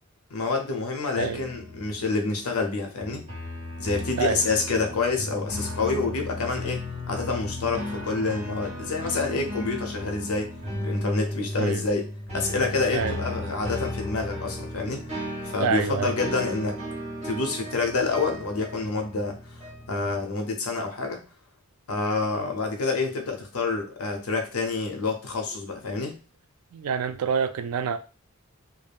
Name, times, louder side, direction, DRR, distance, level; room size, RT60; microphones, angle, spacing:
voice 1, 0.3-3.2 3.8-10.5 10.8-12.1 12.3-15.0 15.4-16.8 17.2-19.4 19.9-21.2 21.9-26.2, left 3 dB, 90° left, 0.7 m, -27 dB
sound 1, 1.1-20.3, left 1 dB, 30° right, 1.1 m, -35 dB
voice 2, 15.6-16.2 26.7-28.0, right 6 dB, 80° right, 0.4 m, -27 dB
2.3 x 2.0 x 3.4 m
head